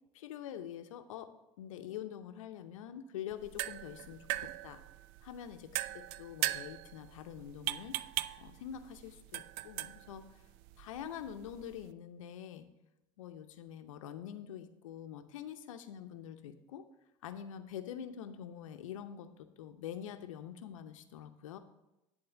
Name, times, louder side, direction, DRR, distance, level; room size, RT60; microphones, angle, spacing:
voice 1, 0.1-1.3 1.6-4.8 5.2-8.0 8.4-10.4 10.8-12.7 13.2-16.8 17.2-21.6, left 9 dB, 80° left, 9 dB, 0.7 m, -45 dB
sound 1, 3.3-11.9, right 16 dB, 65° right, 0.4 m, -40 dB
11.0 x 4.1 x 6.9 m, 0.95 s
hypercardioid pair, 70°, 17 cm